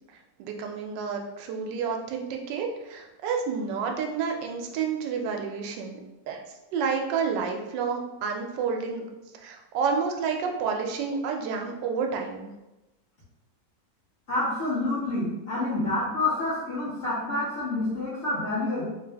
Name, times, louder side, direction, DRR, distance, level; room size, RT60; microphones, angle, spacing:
voice 1, 0.4-6.0 6.3-6.4 6.7-9.0 9.4-12.5, right 5 dB, 90° right, 3 dB, 1.3 m, -29 dB
voice 2, 14.3-18.8, left 2 dB, 55° left, -12 dB, 1.4 m, -28 dB
3.4 x 2.5 x 3.3 m, 1.0 s
omnidirectional pair, 1.9 m